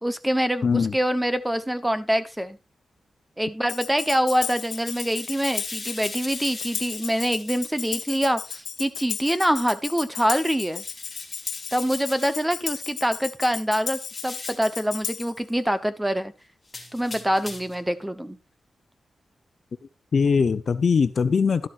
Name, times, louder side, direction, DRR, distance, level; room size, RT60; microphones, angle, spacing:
voice 1, 0.0-2.6 3.4-10.8 11.7-16.3 16.9-18.4, equal, 5° right, 0.9 m, -25 dB
voice 2, 0.6-1.0 20.1-21.7, left 5 dB, 55° left, 0.9 m, -21 dB
Tambourine, 3.7-15.4, left 7 dB, 80° left, 1.3 m, -34 dB
sound 1, 4.2-8.2 10.6-12.4 13.9-14.7 16.7-17.8, left 3 dB, 20° left, 3.6 m, -41 dB
12.0 x 11.5 x 2.5 m
wide cardioid pair, 140°, 0 cm